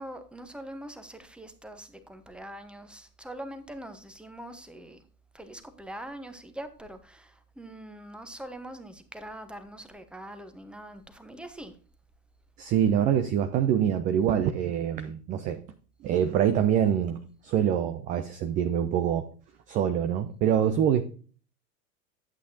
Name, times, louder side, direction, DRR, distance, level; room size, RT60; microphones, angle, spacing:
voice 1, 0.0-5.0 5.3-11.8, right 1 dB, ahead, 1.0 m, -43 dB
voice 2, 12.6-15.6 16.0-19.3 19.7-21.0, right 9 dB, 20° right, 0.4 m, -25 dB
11.5 x 8.3 x 2.7 m
figure-of-eight pair, 85°, 46 cm